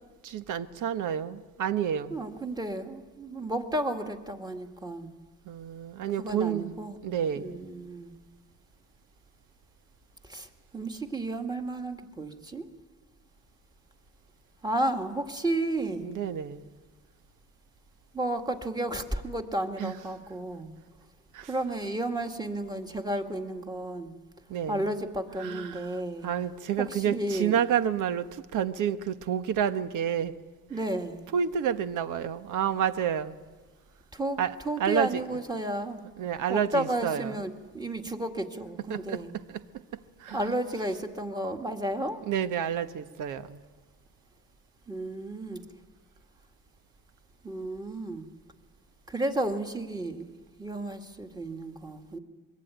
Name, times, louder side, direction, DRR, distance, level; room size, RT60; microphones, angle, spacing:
voice 1, 0.2-2.2 5.4-6.7 7.0-7.6 16.0-16.7 19.8-19.9 21.3-21.5 24.5-24.9 25.4-30.3 31.3-33.4 34.4-35.2 36.2-37.3 38.9-39.2 39.5-39.6 40.2-40.4 42.3-43.6, right 8 dB, 65° right, 1.4 m, -29 dB
voice 2, 2.1-5.1 6.2-7.0 7.4-8.1 10.2-12.7 14.6-16.1 18.1-20.7 21.5-24.1 24.7-26.3 26.8-27.6 30.7-31.2 34.1-36.0 36.5-39.3 40.3-42.2 44.9-45.6 47.4-48.3 49.1-50.2 50.6-52.2, right 1 dB, 10° right, 2.1 m, -32 dB
25.0 x 22.5 x 9.4 m
cardioid pair, 120°, 33 cm